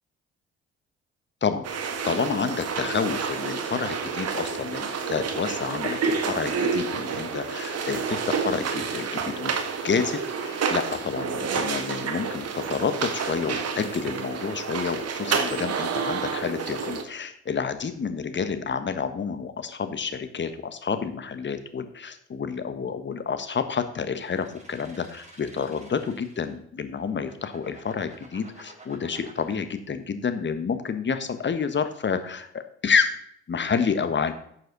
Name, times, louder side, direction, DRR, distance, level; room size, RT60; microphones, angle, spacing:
voice 1, 1.4-9.5 9.8-33.2 33.5-34.3, left 6 dB, 35° left, 10 dB, 1.4 m, -29 dB
sound 1, 1.6-17.0, right 5 dB, 50° right, 1.7 m, -29 dB
sound 2, 24.1-26.6 27.1-29.5, right 2 dB, 20° right, 4.0 m, -50 dB
11.5 x 7.5 x 4.1 m, 0.68 s
hypercardioid pair, 50°, 32 cm